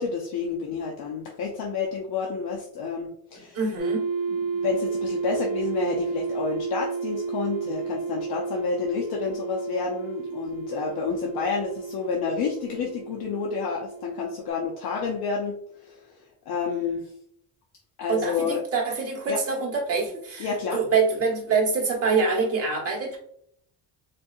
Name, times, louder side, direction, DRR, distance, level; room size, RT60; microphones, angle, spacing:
voice 1, 0.0-3.6 4.3-17.1 18.0-18.6 19.3-19.4 20.4-20.8, left 5 dB, 70° left, -1 dB, 0.7 m, -29 dB
voice 2, 3.5-4.1 18.1-23.2, right 4 dB, 35° right, -2 dB, 1.3 m, -25 dB
sound 1, 3.8-14.5, right 5 dB, 60° right, 1.3 m, -32 dB
4.2 x 2.6 x 2.4 m, 0.67 s
cardioid pair, 135°, 40 cm